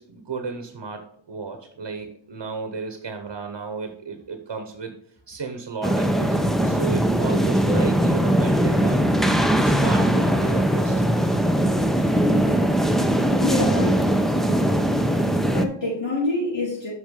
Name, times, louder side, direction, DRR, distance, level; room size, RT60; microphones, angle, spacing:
voice 1, 0.0-4.9 5.3-6.4 6.6-9.1 9.6-11.0, right 5 dB, 75° right, 1.0 m, -33 dB
sound 1, 5.8-15.6, right 1 dB, ahead, 0.8 m, -20 dB
voice 2, 13.4-14.1 15.5-16.9, left 2 dB, 85° left, 3.6 m, -26 dB
8.0 x 5.6 x 3.7 m
wide cardioid pair, 55°, 42 cm